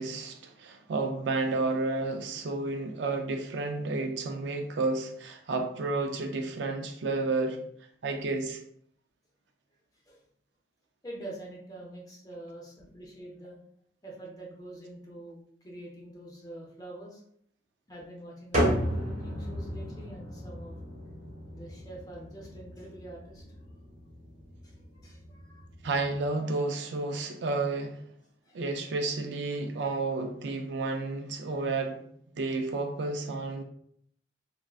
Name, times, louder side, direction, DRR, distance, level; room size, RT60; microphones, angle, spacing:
voice 1, 0.0-7.6 8.0-8.6 25.8-28.0 28.5-32.0 32.3-33.6, right 3 dB, 80° right, 5 dB, 0.4 m, -31 dB
voice 2, 11.0-13.6 14.0-17.2 17.9-20.7 21.5-23.4 24.6-25.7 28.5-28.6, right 1 dB, 20° left, -2 dB, 0.7 m, -45 dB
sound 1, 18.5-26.3, equal, 40° right, 1.2 m, -34 dB
3.5 x 2.1 x 2.3 m, 0.67 s
head